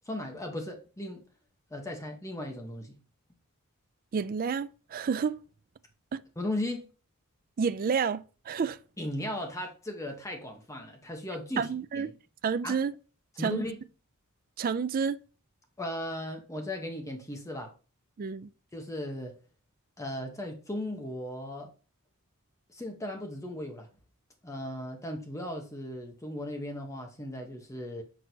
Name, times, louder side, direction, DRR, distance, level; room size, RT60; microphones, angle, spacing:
voice 1, 0.1-1.2 1.7-3.0 6.4-6.8 9.0-11.7 11.9-12.0 12.6-12.8 13.4-13.8 15.8-17.7 18.7-19.3 20.0-21.7 22.7-23.9 24.4-28.0, left 1 dB, 15° left, 0.8 m, -36 dB
voice 2, 4.1-5.4 6.1-6.2 7.6-8.8 11.6-12.1 12.4-12.9 13.4-13.6 14.6-15.2 18.2-18.5, right 6 dB, 40° right, 0.3 m, -30 dB
6.2 x 6.0 x 2.7 m
head